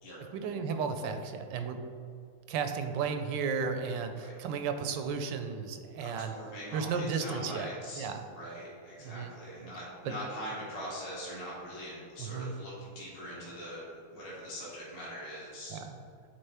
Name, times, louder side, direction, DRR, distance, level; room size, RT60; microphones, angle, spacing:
voice 1, 0.3-1.8 2.5-6.3 6.7-7.7 8.0-8.2 9.0-9.3 10.0-10.1 12.2-12.5 15.7-15.9, right 5 dB, 90° right, 7 dB, 1.3 m, -34 dB
voice 2, 6.0-15.8, equal, 25° left, -7 dB, 1.3 m, -42 dB
8.4 x 3.6 x 3.4 m, 2.2 s
omnidirectional pair, 1.9 m